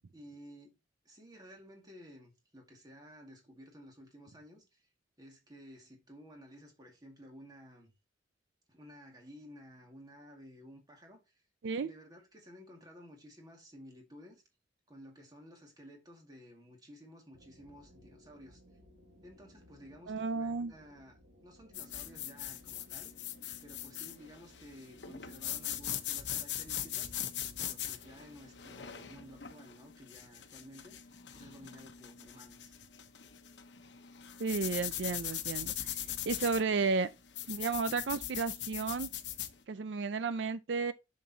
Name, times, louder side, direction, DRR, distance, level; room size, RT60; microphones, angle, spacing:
voice 1, 0.1-0.8 1.0-4.9 5.2-7.9 8.7-11.4 11.8-14.4 14.9-18.6 19.2-23.1 23.6-27.1 27.6-32.8, equal, 20° right, 2.1 m, -54 dB
sound 1, 17.3-29.5, equal, 55° right, 1.6 m, -61 dB
voice 2, 20.1-20.7 34.4-36.0 36.3-37.1 37.5-39.1 39.7-40.9, right 4 dB, 80° right, 0.5 m, -33 dB
sound 2, 21.7-39.5, left 11 dB, 75° left, 1.0 m, -41 dB
7.0 x 6.5 x 2.8 m
head